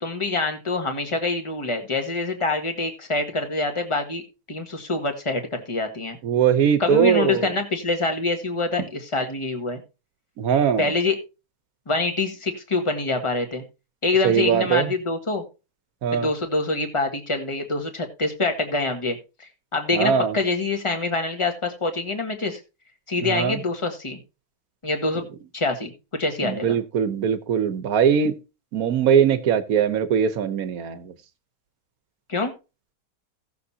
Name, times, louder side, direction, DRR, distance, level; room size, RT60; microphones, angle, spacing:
voice 1, 0.0-4.2 4.5-6.2 6.8-9.8 10.8-11.2 11.9-13.6 14.0-15.4 16.1-22.6 23.1-24.2 24.8-25.2 25.5-26.8 32.3-32.5, left 3 dB, 20° left, 1.5 m, -25 dB
voice 2, 6.2-7.5 10.4-10.9 14.2-14.9 16.0-16.3 19.9-20.3 23.2-23.6 26.4-28.4 28.7-31.1, right 8 dB, 65° right, 1.3 m, -21 dB
17.0 x 6.9 x 2.8 m
omnidirectional pair, 1.7 m